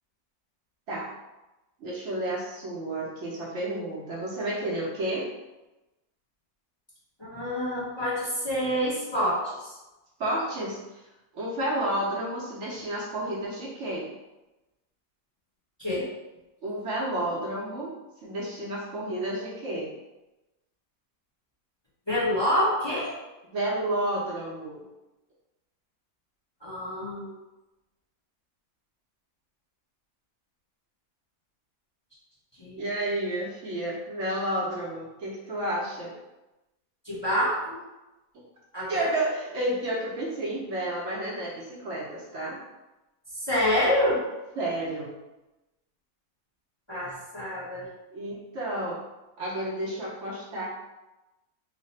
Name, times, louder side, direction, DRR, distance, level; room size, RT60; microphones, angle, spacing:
voice 1, 1.8-5.3 10.2-11.0 11.3-14.0 16.6-17.9 18.2-19.9 23.5-24.8 32.8-36.1 38.9-42.6 44.6-45.1 48.1-49.0 49.4-50.6, right 1 dB, 60° right, -5 dB, 0.9 m, -31 dB
voice 2, 7.2-9.8 15.8-16.1 22.1-23.1 26.6-27.3 32.6-32.8 37.0-37.8 38.7-39.2 43.4-44.2 46.9-47.9, equal, 20° left, -8 dB, 0.8 m, -27 dB
3.1 x 2.1 x 4.1 m, 1.0 s
omnidirectional pair, 1.5 m